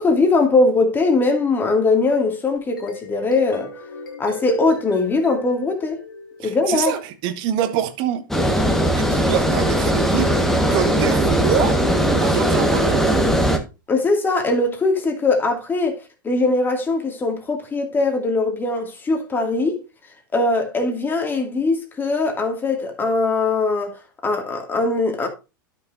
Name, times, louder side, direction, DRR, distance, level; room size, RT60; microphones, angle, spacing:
voice 1, 0.0-3.7 4.2-6.0 6.4-7.0 13.9-16.0 16.2-19.8 20.3-24.0 24.2-25.3, left 3 dB, 20° left, 2.2 m, -20 dB
sound 1, 2.6-6.9, left 3 dB, 75° left, 2.2 m, -38 dB
voice 2, 6.4-8.2 8.9-11.8 12.1-13.3, right 9 dB, 45° right, 1.2 m, -25 dB
Water, 8.3-13.6, equal, 5° left, 1.3 m, -19 dB
12.5 x 6.0 x 2.6 m
figure-of-eight pair, 90°, 11 cm